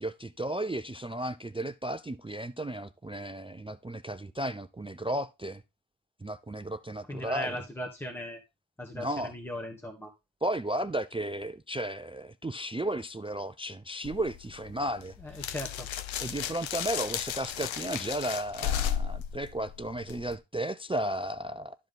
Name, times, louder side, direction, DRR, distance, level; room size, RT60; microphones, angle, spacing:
voice 1, 0.0-5.6 6.2-7.6 8.9-9.3 10.4-15.1 16.2-21.7, right 1 dB, 15° right, 0.4 m, -34 dB
voice 2, 7.1-8.4 8.8-10.1 15.2-15.9, equal, 5° left, 1.5 m, -38 dB
sound 1, 14.0-20.4, left 9 dB, 75° left, 0.8 m, -35 dB
12.0 x 4.9 x 3.8 m
cardioid pair, 60°, 47 cm